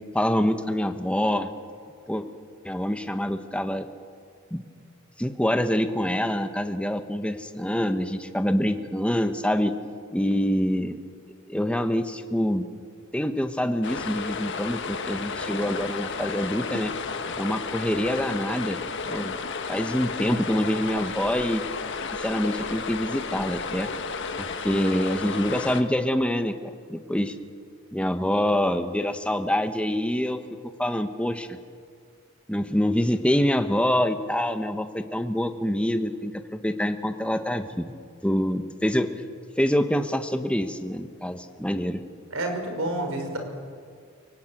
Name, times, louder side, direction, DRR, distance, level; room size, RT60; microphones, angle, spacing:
voice 1, 0.1-1.5 2.1-2.3 2.6-3.9 4.5-4.6 5.2-9.7 10.1-11.0 11.5-12.6 13.1-16.9 17.4-18.8 19.1-19.4 19.7-21.6 22.2-23.9 24.4-26.6 26.9-27.3 27.9-30.4 30.8-31.6 32.5-37.9 38.2-39.1 39.6-42.0, equal, 5° left, 8 dB, 1.2 m, -25 dB
sound 1, 13.8-25.8, left 4 dB, 55° left, 1.7 m, -32 dB
voice 2, 42.3-43.4, right 1 dB, 65° right, 4 dB, 5.2 m, -29 dB
29.0 x 18.0 x 9.2 m, 2.1 s
head